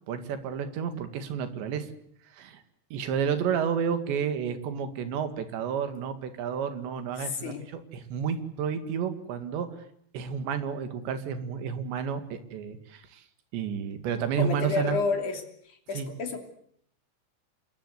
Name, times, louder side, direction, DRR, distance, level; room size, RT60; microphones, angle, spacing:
voice 1, 0.1-1.9 2.3-2.6 2.9-9.7 10.1-13.2 13.5-15.0 15.9-16.1, right 7 dB, 85° right, 9 dB, 4.3 m, -31 dB
voice 2, 7.2-7.7 14.4-16.4, left 4 dB, 50° left, 4 dB, 4.2 m, -30 dB
27.5 x 22.0 x 8.1 m, 0.68 s
omnidirectional pair, 5.0 m